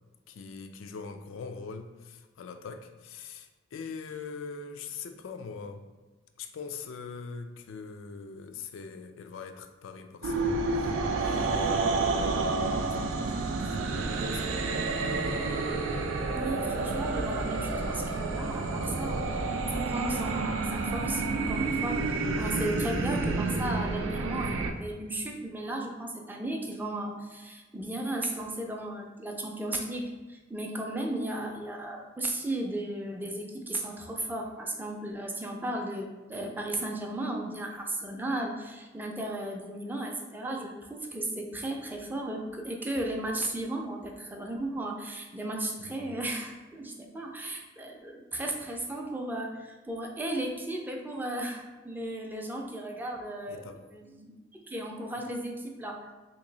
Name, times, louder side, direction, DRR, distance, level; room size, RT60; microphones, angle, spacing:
voice 1, 0.3-5.8 6.4-10.9 11.2-12.4 12.8-14.6 45.8-46.2 53.5-53.8, left 5 dB, 90° left, 7 dB, 0.4 m, -42 dB
sound 1, 10.2-24.7, right 3 dB, 85° right, 0.4 m, -29 dB
voice 2, 16.3-54.3 54.6-56.1, right 1 dB, 10° right, 1 dB, 0.4 m, -35 dB
2.9 x 2.6 x 3.8 m, 1.2 s
head